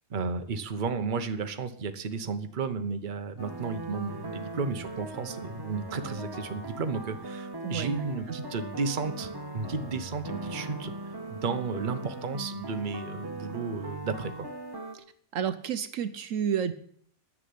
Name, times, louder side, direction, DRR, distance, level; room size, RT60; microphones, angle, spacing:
voice 1, 0.1-10.9 11.3-14.5, right 4 dB, 40° right, 8 dB, 1.1 m, -33 dB
sound 1, 3.4-15.0, right 2 dB, 15° right, 1.5 m, -39 dB
voice 2, 15.3-16.7, right 8 dB, 70° right, 12 dB, 1.1 m, -30 dB
10.5 x 7.6 x 9.5 m, 0.64 s
omnidirectional pair, 1.4 m